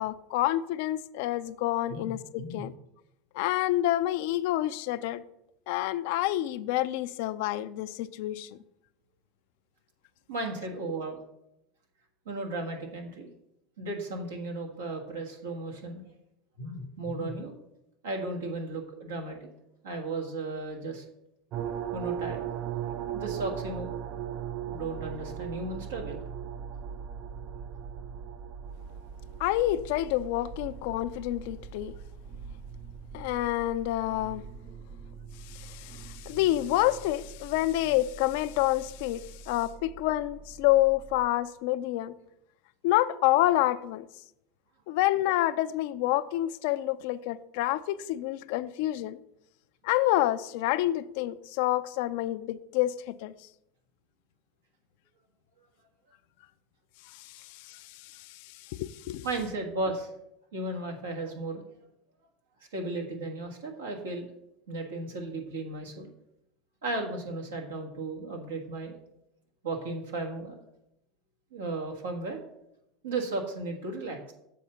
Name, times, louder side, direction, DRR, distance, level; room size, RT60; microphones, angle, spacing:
voice 1, 0.0-2.7 3.3-5.2 5.7-8.5 29.4-31.9 33.1-34.5 35.4-42.1 42.8-44.1 44.9-49.2 49.8-53.3 57.1-59.3, left 15 dB, 70° left, 0.4 m, -28 dB
voice 2, 10.3-11.2 12.2-13.3 13.8-16.0 16.6-17.5 18.0-19.5 19.8-21.0 21.9-22.4 23.1-23.9 24.7-26.2 59.2-60.1 60.5-61.6 62.7-64.3 64.7-66.1 66.8-69.0 69.6-70.6 71.5-72.4 73.0-74.3, right 2 dB, 90° right, 1.5 m, -35 dB
sound 1, 21.5-41.3, right 8 dB, 50° right, 0.4 m, -40 dB
7.6 x 4.2 x 6.7 m
hypercardioid pair, 90°, 0 cm